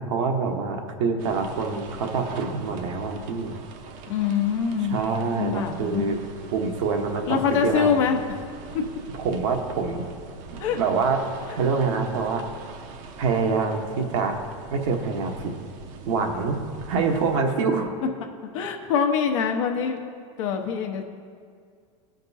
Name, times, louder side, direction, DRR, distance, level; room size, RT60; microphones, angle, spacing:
voice 1, 0.0-3.6 4.9-6.2 6.5-8.0 9.1-10.0 10.7-11.2 11.5-12.4 13.2-14.3 14.7-15.5 16.1-16.6 16.9-17.9, right 4 dB, 75° right, 3 dB, 1.1 m, -25 dB
sound 1, 1.2-17.4, right 5 dB, 50° right, 0.7 m, -43 dB
voice 2, 4.1-5.0 5.3-6.1 7.3-8.2 8.7-8.8 10.6-10.8 18.5-20.0 20.4-21.0, left 7 dB, 70° left, 3 dB, 1.0 m, -24 dB
14.5 x 5.2 x 2.7 m, 2.1 s
supercardioid pair, 120°, 16 cm